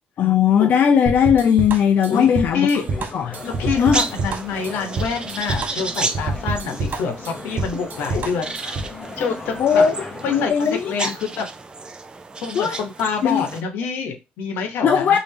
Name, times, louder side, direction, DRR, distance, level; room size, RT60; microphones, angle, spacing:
voice 1, 0.2-2.7 3.1-3.4 3.8-4.0 8.1-8.3 9.6-9.9 10.3-11.1 12.5-12.8 13.2-13.4 14.8-15.2, left 8 dB, 55° left, 0.4 m, -18 dB
sound 1, 1.1-9.0, right 3 dB, 55° right, 0.7 m, -27 dB
voice 2, 2.1-2.8 3.2-8.8 9.2-9.8 10.2-11.5 12.4-15.2, left 5 dB, 85° left, 0.8 m, -26 dB
sound 2, 2.8-10.5, left 3 dB, 25° left, 0.7 m, -37 dB
sound 3, 3.3-13.6, right 3 dB, 25° right, 0.4 m, -33 dB
3.2 x 2.6 x 3.3 m
cardioid pair, 95°, 4 cm